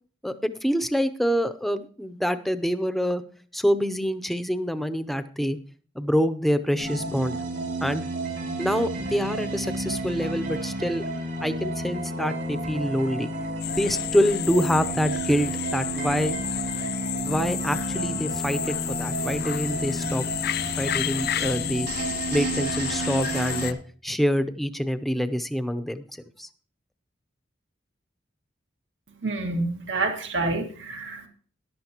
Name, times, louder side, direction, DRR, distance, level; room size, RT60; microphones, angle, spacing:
voice 1, 0.6-3.2 3.5-5.6 6.0-7.4 7.8-8.1 8.6-11.1 11.4-13.3 13.8-16.4 17.2-20.2 20.8-21.9 22.3-23.8 24.0-26.0 26.4-26.5, equal, ahead, 11 dB, 0.6 m, -26 dB
sound 1, 6.8-23.7, right 1 dB, 65° right, 5.0 m, -31 dB
sound 2, 13.6-23.7, left 12 dB, 55° left, 0.5 m, -32 dB
voice 2, 29.2-31.3, right 3 dB, 80° right, 3 dB, 1.9 m, -28 dB
14.0 x 11.0 x 2.9 m, 0.42 s
head